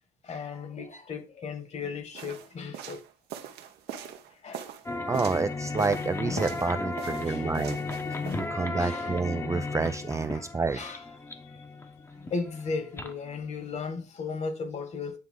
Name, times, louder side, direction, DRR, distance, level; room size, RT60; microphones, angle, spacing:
voice 1, 0.2-3.0 3.9-4.1 4.4-4.7 5.0-5.1 7.0-7.8 8.3-9.1 10.1-11.0 11.4-11.6 12.3-15.2, left 4 dB, 40° left, 1.6 m, -37 dB
sound 1, 2.1-5.5 5.8-6.7 7.0-8.4, right 9 dB, 80° right, 1.0 m, -41 dB
sound 2, 4.9-13.8, left 3 dB, 15° left, 0.9 m, -35 dB
voice 2, 5.1-7.8 8.4-11.0, right 4 dB, 20° right, 0.4 m, -29 dB
9.4 x 3.4 x 3.7 m
cardioid pair, 110°, 17 cm